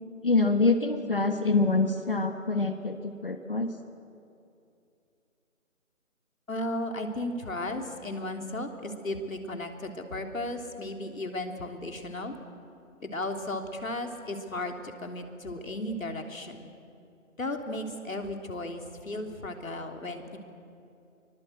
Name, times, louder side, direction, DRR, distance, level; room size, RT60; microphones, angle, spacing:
voice 1, 0.2-3.7, left 3 dB, 40° left, 7 dB, 1.3 m, -25 dB
voice 2, 6.5-12.3 13.0-16.7 17.4-20.4, left 1 dB, 75° left, 4 dB, 3.4 m, -35 dB
24.0 x 21.0 x 8.0 m, 2.6 s
figure-of-eight pair, 175°, 41 cm